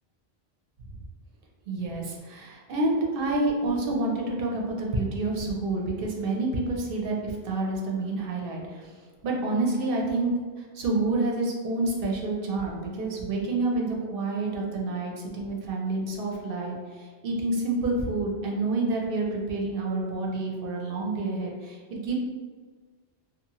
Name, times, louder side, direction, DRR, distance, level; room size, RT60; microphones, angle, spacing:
voice 1, 1.7-8.9 9.2-10.3 10.7-16.7 17.2-22.1, right 2 dB, 60° right, -1 dB, 0.7 m, -28 dB
2.7 x 2.4 x 2.8 m, 1.5 s
omnidirectional pair, 1.1 m